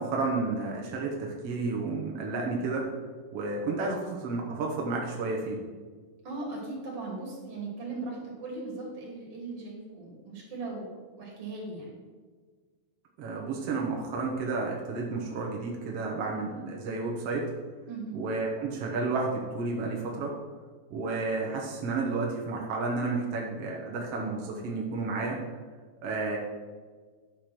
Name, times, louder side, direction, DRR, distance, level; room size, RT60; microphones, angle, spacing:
voice 1, 0.0-2.9 3.3-5.6 13.2-17.5 18.1-20.3 20.9-25.4 26.0-26.4, right 3 dB, 75° right, -1 dB, 1.4 m, -31 dB
voice 2, 6.2-11.9 17.9-18.2, right 3 dB, 40° right, -3 dB, 3.5 m, -38 dB
10.5 x 5.0 x 6.0 m, 1.5 s
omnidirectional pair, 4.5 m